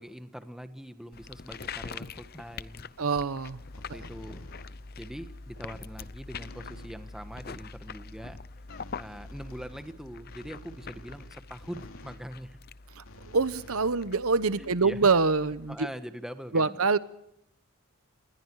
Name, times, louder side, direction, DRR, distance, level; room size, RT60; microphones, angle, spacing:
voice 1, 0.0-2.9 3.9-4.5 5.0-8.4 9.0-12.6 14.6-15.0 15.7-16.8, equal, ahead, 8 dB, 1.4 m, -43 dB
sound 1, 1.1-15.7, left 4 dB, 45° left, 0.7 m, -44 dB
voice 2, 3.0-3.6 12.9-13.0 13.3-15.9 16.5-17.0, right 4 dB, 75° right, 15 dB, 0.9 m, -25 dB
sound 2, 3.7-5.0 6.3-7.0 8.7-12.3 13.0-14.5, left 1 dB, 70° left, 2.9 m, -51 dB
28.0 x 21.0 x 4.7 m, 0.79 s
head